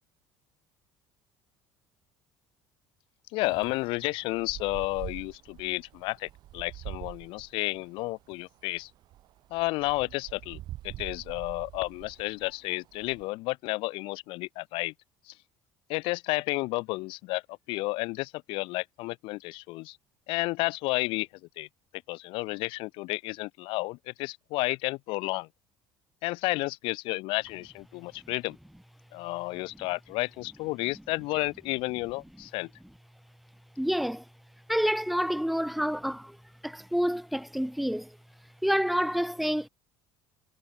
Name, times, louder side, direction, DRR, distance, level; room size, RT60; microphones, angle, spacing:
voice 1, 3.3-8.9 9.5-10.6 10.8-14.9 15.3-15.4 15.9-20.0 20.3-21.3 21.6-21.7 22.1-25.5 26.2-28.6 29.1-32.7, left 22 dB, 70° left, 5.9 m, -32 dB
Wind, 3.4-13.3, right 14 dB, 50° right, 5.7 m, -45 dB
voice 2, 33.8-34.2 34.7-36.4 36.6-38.2 38.6-39.7, equal, ahead, 2.8 m, -28 dB
cardioid pair, 155°, 9 cm